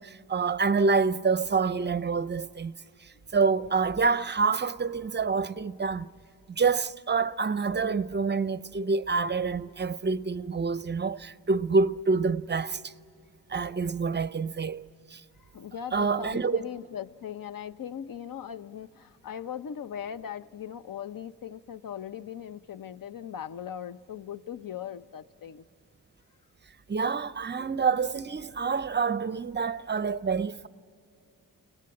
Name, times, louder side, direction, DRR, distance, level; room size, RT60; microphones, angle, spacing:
voice 1, 0.0-2.7 3.3-6.1 6.5-12.9 13.5-14.8 15.1-15.2 15.9-16.6 26.9-30.7, right 4 dB, 30° right, 0.5 m, -27 dB
voice 2, 15.4-25.7, left 9 dB, 70° left, 0.7 m, -39 dB
30.0 x 18.5 x 8.6 m
wide cardioid pair, 105°, 35 cm